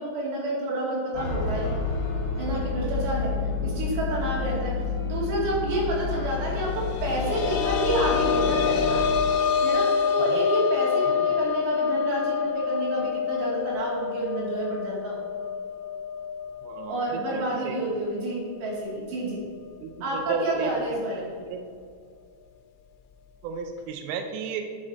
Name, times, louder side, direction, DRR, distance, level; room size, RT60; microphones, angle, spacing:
voice 1, 0.0-1.7 2.4-3.3 3.6-4.7 5.0-9.0 9.6-15.2 16.9-19.4 20.0-21.3, right 1 dB, 60° right, -5 dB, 4.3 m, -29 dB
sound 1, 1.1-9.3, left 5 dB, 50° left, 1.9 m, -30 dB
sound 2, 6.7-18.2 18.5-18.6 20.2-20.3, left 6 dB, 85° left, 2.5 m, -27 dB
voice 2, 16.6-17.8 19.8-20.8 21.1-21.6 23.4-24.7, right 5 dB, 85° right, 5 dB, 2.5 m, -34 dB
9.7 x 6.4 x 4.3 m, 2.2 s
omnidirectional pair, 5.9 m